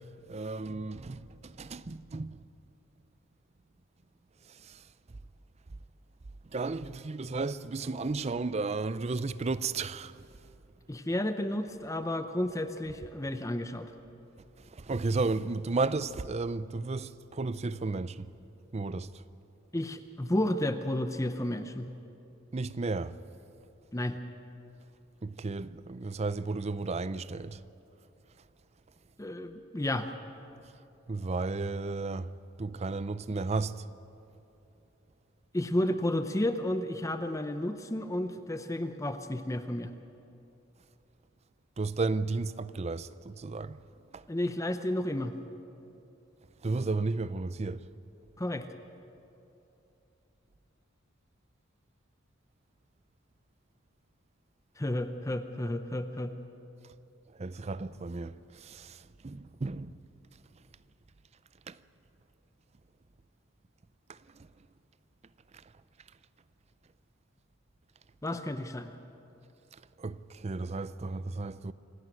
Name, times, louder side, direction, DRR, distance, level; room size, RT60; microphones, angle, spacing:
voice 1, 0.0-2.4 4.6-4.8 6.5-10.3 14.7-18.3 18.7-19.2 22.5-23.2 25.2-27.6 31.1-33.8 41.8-43.8 44.1-44.2 46.6-47.9 57.4-59.9 61.7-61.8 64.1-64.5 70.0-71.7, right 3 dB, 30° right, 0.5 m, -33 dB
voice 2, 10.9-13.9 19.7-21.9 23.9-24.2 29.2-30.1 35.5-39.9 44.3-45.4 48.4-48.7 54.8-56.4 68.2-68.9, left 1 dB, 15° left, 0.7 m, -32 dB
26.5 x 12.0 x 9.2 m
head